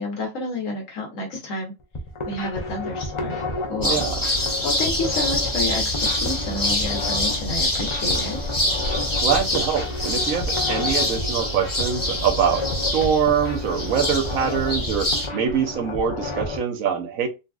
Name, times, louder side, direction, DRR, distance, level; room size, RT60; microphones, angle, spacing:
voice 1, 0.0-1.7 2.2-3.4 3.7-4.0 4.6-8.4, left 2 dB, 75° left, 1.2 m, -29 dB
sound 1, 1.8-16.6, left 2 dB, 50° left, 0.3 m, -32 dB
sound 2, 3.8-15.3, left 1 dB, 20° left, 0.9 m, -25 dB
voice 2, 3.8-4.2 9.2-17.3, right 7 dB, 80° right, 1.2 m, -24 dB
3.9 x 2.3 x 2.3 m
omnidirectional pair, 1.4 m